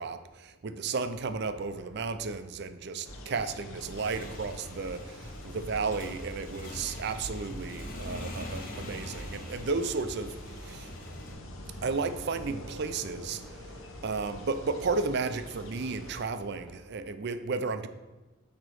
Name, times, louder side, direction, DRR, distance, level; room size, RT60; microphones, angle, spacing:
voice 1, 0.0-10.9 11.8-13.7 14.0-17.9, right 4 dB, 50° right, 10 dB, 0.4 m, -33 dB
sound 1, 1.1-17.0, right 1 dB, ahead, 0.6 m, -55 dB
sound 2, 3.1-16.3, equal, 75° left, 0.9 m, -44 dB
Motorcycle / Engine, 3.7-11.3, left 1 dB, 40° left, 1.1 m, -44 dB
8.8 x 3.0 x 6.4 m, 1.1 s
head